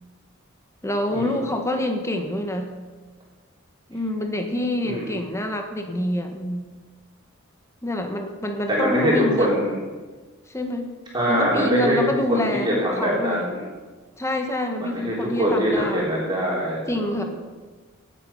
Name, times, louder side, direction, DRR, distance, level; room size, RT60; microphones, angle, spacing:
voice 1, 0.8-2.7 3.9-6.7 7.8-9.6 10.5-10.9 11.3-13.5 14.2-16.1 16.9-17.2, left 1 dB, 15° left, 4 dB, 1.4 m, -26 dB
voice 2, 4.8-5.2 8.7-9.7 11.1-12.0 12.3-13.6 14.8-17.3, equal, 20° right, -5 dB, 3.4 m, -23 dB
17.5 x 8.3 x 5.6 m, 1.4 s
head